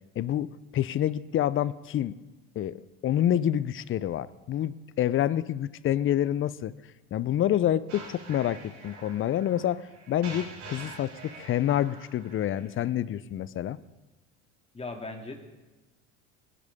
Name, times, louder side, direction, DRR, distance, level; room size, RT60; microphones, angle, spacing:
voice 1, 0.2-0.5 0.7-2.2 2.6-6.7 7.1-13.8, left 11 dB, 35° left, 18 dB, 0.6 m, -27 dB
sound 1, 7.9-12.9, right 3 dB, 65° right, 5.9 m, -46 dB
voice 2, 14.7-15.4, left 2 dB, 15° left, 2 dB, 2.6 m, -37 dB
20.0 x 11.0 x 3.6 m, 1.1 s
hypercardioid pair, 80°, 36 cm